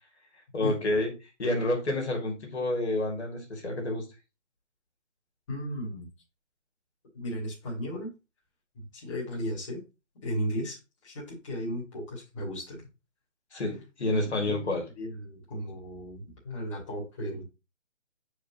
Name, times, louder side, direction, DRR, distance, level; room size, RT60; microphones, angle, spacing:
voice 1, 0.5-1.1 1.4-4.0 13.5-14.8, left 1 dB, 60° left, 1 dB, 2.6 m, -29 dB
voice 2, 5.5-6.1 7.1-8.1 8.7-9.8 10.2-12.8 14.5-17.4, equal, 25° left, -4 dB, 2.4 m, -35 dB
7.5 x 4.7 x 2.9 m, 0.27 s
hypercardioid pair, 170°, 37 cm